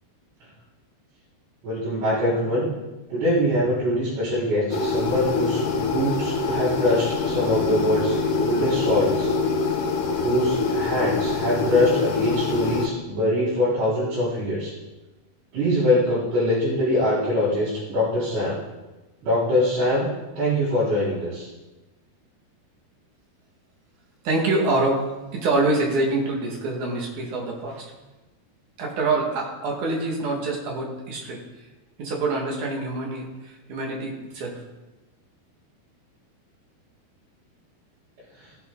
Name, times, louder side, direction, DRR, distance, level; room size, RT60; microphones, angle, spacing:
voice 1, 1.6-2.6 3.1-9.3 10.2-14.7 15.5-18.6 19.2-20.1 20.4-21.5, left 1 dB, 70° right, -13 dB, 6.1 m, -23 dB
sound 1, 4.7-12.9, left 4 dB, 65° left, 2.4 m, -25 dB
voice 2, 24.2-25.1 25.3-27.9 28.8-31.4 32.0-34.6, right 2 dB, 55° right, -1 dB, 3.1 m, -25 dB
15.5 x 10.5 x 3.9 m, 1.1 s
omnidirectional pair, 4.7 m